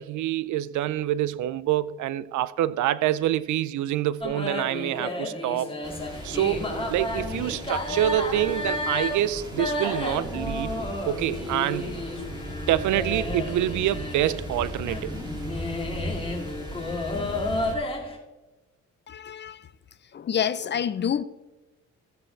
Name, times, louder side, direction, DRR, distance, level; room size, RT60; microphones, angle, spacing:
voice 1, 0.0-5.7 6.2-10.7 11.1-11.9 12.7-15.1, right 13 dB, 75° right, 0.5 m, -26 dB
sound 1, 4.2-18.2, left 2 dB, 15° left, 2.3 m, -32 dB
sound 2, 5.8-17.7, equal, 15° right, 2.8 m, -37 dB
voice 2, 19.1-19.6 20.1-21.2, left 8 dB, 35° left, 0.5 m, -27 dB
16.0 x 7.6 x 3.3 m
cardioid pair, 90°, 30 cm